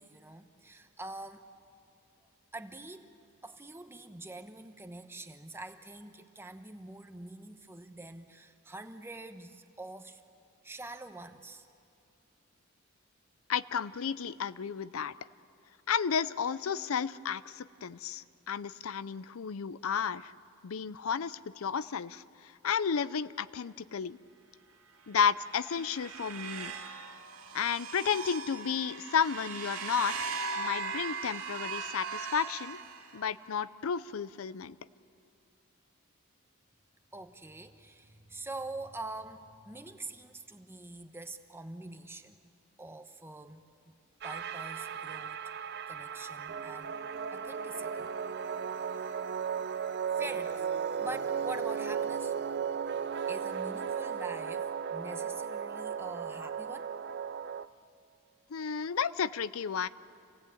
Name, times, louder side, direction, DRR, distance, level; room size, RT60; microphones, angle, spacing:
voice 1, 0.0-1.4 2.5-3.1 3.4-10.2 10.6-11.6 37.1-42.4 42.8-44.0 44.2-45.4 45.9-46.9 47.3-48.1 48.9-49.1 50.1-50.6 51.0-52.6 53.3-56.9, right 2 dB, 10° right, 7 dB, 1.0 m, -45 dB
voice 2, 13.5-15.1 15.9-20.3 20.6-24.2 25.1-26.7 27.5-30.3 30.6-32.8 33.1-34.8 58.5-59.9, left 7 dB, 80° left, 16 dB, 0.5 m, -32 dB
Metallic Fragment, 25.2-33.4, right 4 dB, 80° right, 2.2 m, -39 dB
sound 1, 44.2-57.7, right 7 dB, 50° right, 0.6 m, -35 dB
27.0 x 17.5 x 8.6 m, 2.5 s
head